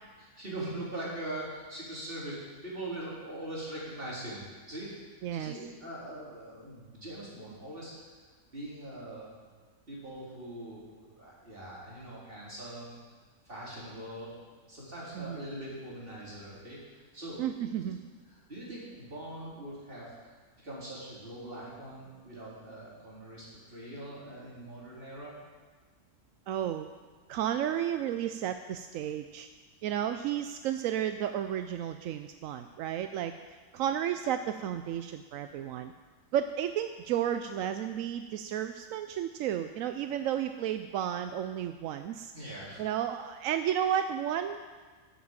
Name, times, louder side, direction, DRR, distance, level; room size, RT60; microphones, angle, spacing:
voice 1, 0.2-4.9 5.3-7.9 8.5-9.3 9.9-13.0 13.4-14.3 14.7-17.4 18.5-20.1 20.6-25.3 42.3-42.8, right 1 dB, 45° right, -7 dB, 4.2 m, -42 dB
voice 2, 5.2-5.5 15.2-15.5 17.4-18.0 26.5-26.9 27.3-29.5 29.8-33.3 33.7-35.9 36.3-42.3 42.8-44.6, right 10 dB, 85° right, 8 dB, 1.0 m, -32 dB
11.0 x 8.6 x 7.3 m, 1.4 s
omnidirectional pair, 1.3 m